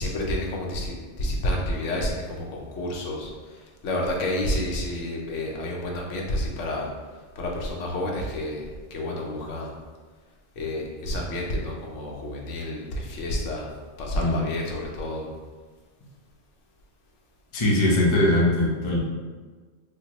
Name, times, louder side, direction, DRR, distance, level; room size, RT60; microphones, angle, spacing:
voice 1, 0.0-6.9 7.4-9.7 10.6-13.7 14.0-15.3, left 1 dB, 85° left, -1 dB, 1.0 m, -30 dB
voice 2, 17.5-19.0, left 1 dB, 35° left, -4 dB, 0.5 m, -21 dB
3.7 x 2.2 x 2.8 m, 1.4 s
omnidirectional pair, 1.2 m